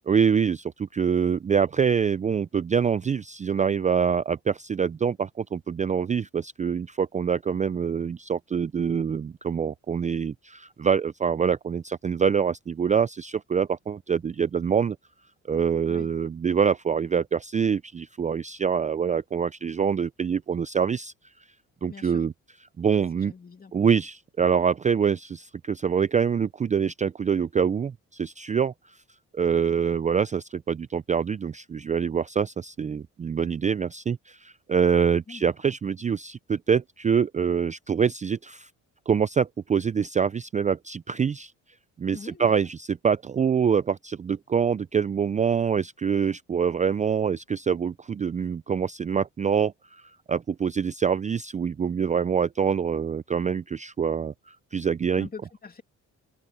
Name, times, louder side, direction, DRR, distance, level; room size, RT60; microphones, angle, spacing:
voice 1, 0.1-15.0 15.5-21.1 21.8-22.3 22.8-23.3 23.7-28.7 29.3-38.7 39.1-41.5 42.0-55.3, right 7 dB, 25° right, 0.4 m, -25 dB
voice 2, 21.8-22.2 23.2-23.7 35.3-35.4 42.1-42.5 55.2-55.8, left 5 dB, 30° left, 2.6 m, -43 dB
open air
cardioid pair, 90°, 30 cm